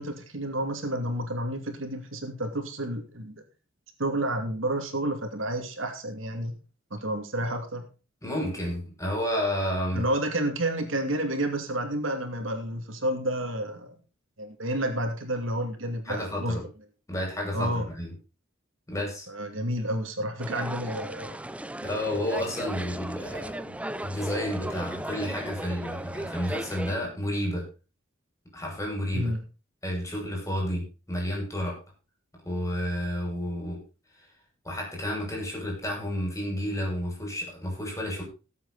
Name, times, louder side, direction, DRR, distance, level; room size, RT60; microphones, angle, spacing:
voice 1, 0.0-3.4 4.0-6.6 6.9-7.8 9.9-13.9 14.4-16.6 17.5-17.9 19.3-21.4 29.1-29.4, right 1 dB, 75° right, 5 dB, 2.5 m, -30 dB
voice 2, 8.2-10.1 16.1-16.6 17.1-18.1 18.9-19.3 21.8-27.6 28.5-29.3 29.8-31.8 32.4-33.8 34.6-38.2, equal, 15° left, -1 dB, 6.4 m, -31 dB
sound 1, 20.4-26.9, right 1 dB, 5° right, 0.5 m, -36 dB
18.5 x 8.2 x 4.1 m, 0.32 s
head